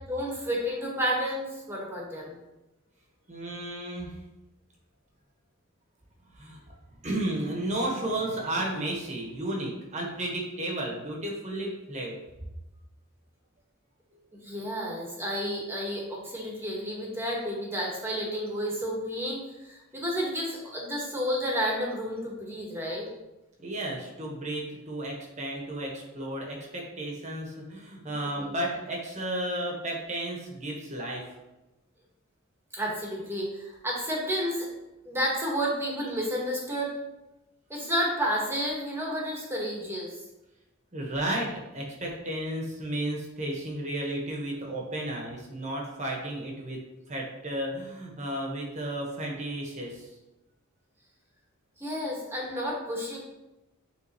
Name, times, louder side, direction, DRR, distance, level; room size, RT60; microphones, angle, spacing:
voice 1, 0.1-2.3 14.3-23.1 28.0-28.5 32.7-34.7 35.0-36.9 37.7-40.2 51.8-53.2, equal, 10° right, -3 dB, 1.4 m, -31 dB
voice 2, 3.3-4.1 6.4-6.6 7.0-12.2 23.6-31.2 40.9-46.8 47.1-50.1, right 1 dB, 35° right, -1 dB, 1.3 m, -33 dB
9.3 x 3.5 x 3.0 m, 0.98 s
head